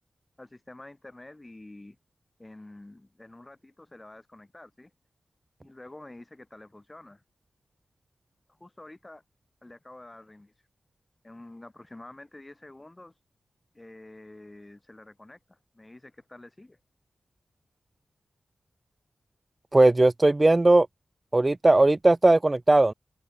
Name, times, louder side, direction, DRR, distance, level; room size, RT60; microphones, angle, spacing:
voice 1, 0.4-2.0 2.4-4.9 5.6-7.2 8.5-9.2 9.6-10.5 11.2-13.1 13.7-16.8, left 2 dB, 15° left, 3.5 m, -48 dB
voice 2, 19.7-20.9 21.3-22.9, right 2 dB, 20° right, 0.4 m, -18 dB
wide cardioid pair, 155°, 0 cm